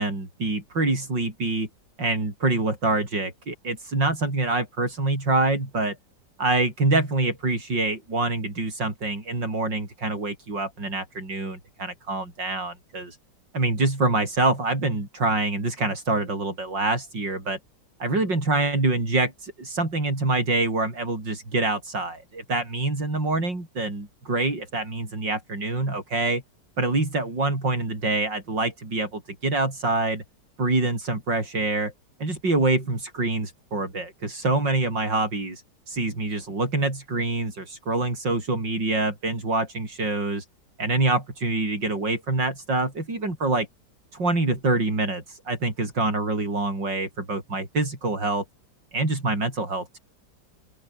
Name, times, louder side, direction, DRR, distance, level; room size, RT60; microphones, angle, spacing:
voice 1, 0.0-1.7 2.0-6.0 6.4-13.2 13.5-17.6 18.0-26.4 26.8-30.2 30.6-31.9 32.2-40.5 40.8-43.7 44.1-48.4 48.9-50.0, right 2 dB, 80° right, 7.2 m, -25 dB
open air
omnidirectional pair, 1.9 m